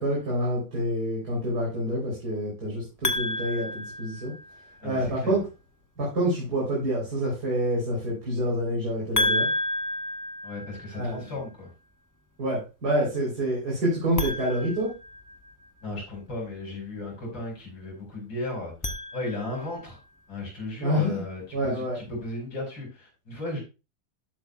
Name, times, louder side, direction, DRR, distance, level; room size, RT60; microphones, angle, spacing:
voice 1, 0.0-4.3 4.8-5.4 6.0-9.5 10.9-11.3 12.4-14.9 20.8-21.2 21.5-22.0, equal, 55° right, -4 dB, 4.1 m, -27 dB
sound 1, 3.0-4.7 9.1-11.2 14.1-15.7 18.6-19.8, left 1 dB, 25° left, 0.3 m, -31 dB
voice 2, 4.8-5.4 10.4-11.7 15.8-18.7 19.1-20.0 20.3-23.6, left 2 dB, 90° left, -1 dB, 5.8 m, -35 dB
12.0 x 8.2 x 2.3 m, 0.30 s
omnidirectional pair, 2.0 m